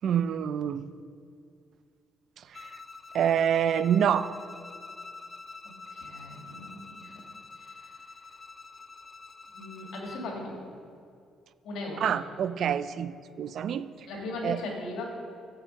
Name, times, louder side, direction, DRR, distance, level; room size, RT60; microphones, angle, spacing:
voice 1, 0.0-0.9 2.4-2.7 3.1-4.3 12.0-13.1 13.4-14.1 14.4-14.6, right 8 dB, 60° right, 14 dB, 0.3 m, -27 dB
Bowed string instrument, 2.5-10.3, left 3 dB, 30° left, 0.4 m, -46 dB
voice 2, 5.9-7.1 7.6-7.8 9.5-10.5 11.6-12.1 14.1-15.1, left 2 dB, 75° left, -1 dB, 2.2 m, -38 dB
7.7 x 7.4 x 5.3 m, 2.4 s
cardioid pair, 100°, 0 cm